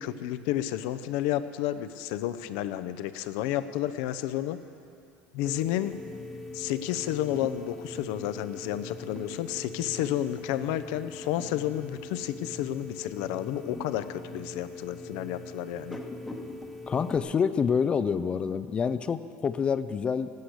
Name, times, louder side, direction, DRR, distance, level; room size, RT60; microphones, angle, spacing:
voice 1, 0.0-4.6 5.3-6.0 6.5-16.0 16.3-16.4, left 13 dB, 70° left, 11 dB, 0.7 m, -31 dB
sound 1, 5.5-17.2, left 2 dB, 5° left, 1.0 m, -41 dB
voice 2, 16.9-20.3, left 6 dB, 20° left, 13 dB, 0.4 m, -27 dB
17.5 x 8.4 x 8.0 m, 2.5 s
cardioid pair, 160°, 5 cm